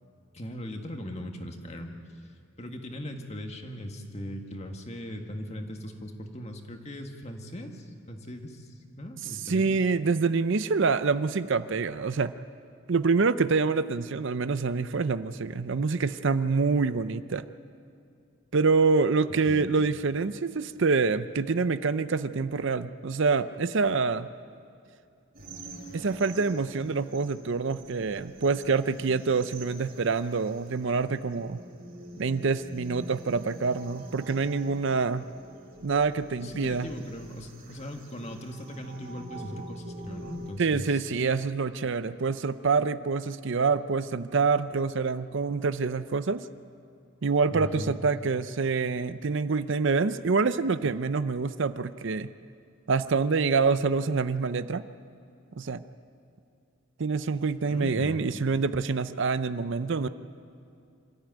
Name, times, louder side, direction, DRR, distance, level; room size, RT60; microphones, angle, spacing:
voice 1, 0.3-2.0 2.6-9.8 19.5-19.7 36.3-41.1 47.5-48.1 57.7-58.2, equal, 30° left, 4 dB, 1.8 m, -39 dB
voice 2, 9.5-12.3 12.9-17.5 18.5-24.3 25.9-31.6 32.2-35.3 35.8-36.9 40.6-46.5 47.2-52.3 52.9-54.8 55.6-55.8 57.0-60.1, right 4 dB, 60° right, 13 dB, 0.6 m, -26 dB
sound 1, 25.3-40.5, right 2 dB, 45° right, 4.5 m, -46 dB
26.0 x 14.0 x 9.2 m, 2.5 s
head